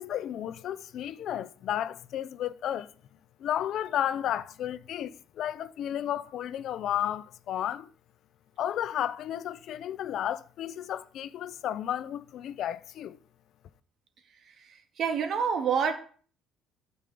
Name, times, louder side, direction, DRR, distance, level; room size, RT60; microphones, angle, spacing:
voice 1, 0.0-2.9 3.4-7.9 8.6-13.2, left 11 dB, 60° left, 0.7 m, -33 dB
voice 2, 15.0-16.0, right 6 dB, 50° right, 2.3 m, -26 dB
13.0 x 5.4 x 8.6 m
cardioid pair, 110°, 0 cm